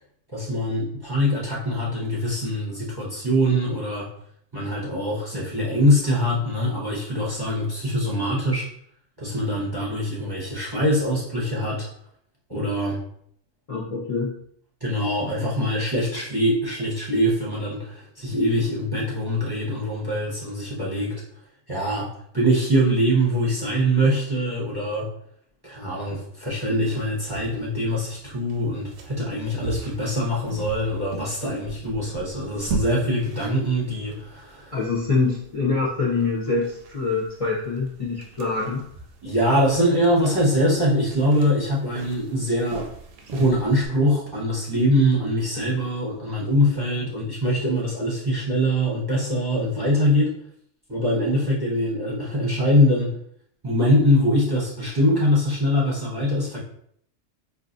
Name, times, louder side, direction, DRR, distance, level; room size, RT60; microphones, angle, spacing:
voice 1, 0.3-4.1 4.5-8.7 9.2-11.9 12.5-13.0 14.8-21.1 21.7-22.1 22.3-25.1 25.6-34.8 39.2-42.9 43.3-50.3 50.9-53.1 53.6-56.6, equal, 20° right, -5 dB, 0.8 m, -23 dB
voice 2, 13.7-14.3 34.7-38.8, left 4 dB, 35° left, -5 dB, 0.6 m, -25 dB
sound 1, 26.7-43.9, right 4 dB, 80° right, 0.9 m, -40 dB
4.8 x 2.5 x 2.5 m, 0.67 s
omnidirectional pair, 1.3 m